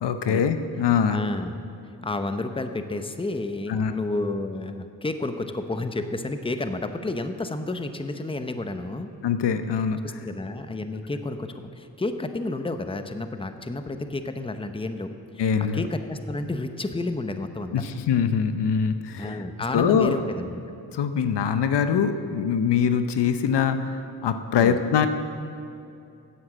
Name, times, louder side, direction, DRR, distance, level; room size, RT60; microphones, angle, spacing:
voice 1, 0.0-1.2 3.7-3.9 9.2-10.0 15.4-15.9 17.7-19.4 19.7-20.2 20.9-25.1, left 7 dB, 75° left, 9 dB, 0.7 m, -23 dB
voice 2, 1.1-1.6 2.0-9.1 10.0-17.7 19.2-20.6 24.6-24.8, left 2 dB, 15° left, 8 dB, 0.8 m, -31 dB
9.9 x 7.8 x 7.3 m, 2.6 s
cardioid pair, 50°, 42 cm